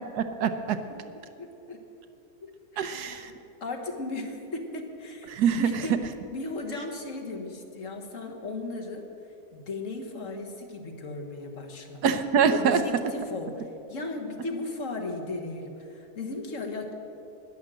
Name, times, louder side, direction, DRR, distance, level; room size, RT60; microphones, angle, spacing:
voice 1, 0.2-0.8 2.8-3.3 5.3-5.7 12.0-12.8, right 7 dB, 85° right, 9 dB, 1.4 m, -24 dB
voice 2, 1.4-1.8 2.4-3.3 3.6-6.0 6.3-9.1 9.5-12.1 12.5-16.9, left 2 dB, 55° left, 3 dB, 1.6 m, -36 dB
11.5 x 10.0 x 7.6 m, 2.9 s
omnidirectional pair, 1.6 m